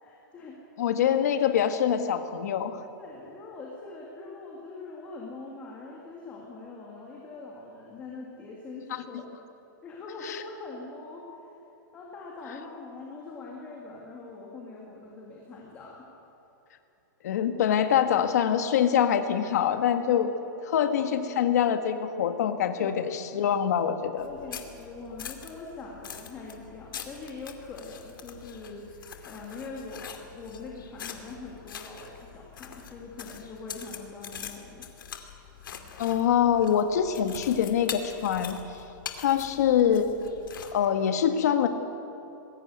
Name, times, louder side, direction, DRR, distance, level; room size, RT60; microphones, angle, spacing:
voice 1, 0.0-0.6 3.0-9.3 9.8-11.3 11.9-16.1 20.1-20.4 22.8-23.1 24.2-34.9, left 3 dB, 15° left, -3 dB, 2.1 m, -43 dB
voice 2, 0.8-2.8 10.2-10.4 17.2-20.3 20.7-24.3 36.0-38.6 39.2-40.2 40.7-41.7, left 9 dB, 50° left, 8 dB, 1.7 m, -24 dB
sound 1, 24.2-40.9, left 8 dB, 80° left, 2.5 m, -43 dB
21.0 x 16.0 x 9.5 m, 2.9 s
supercardioid pair, 180°, 11 cm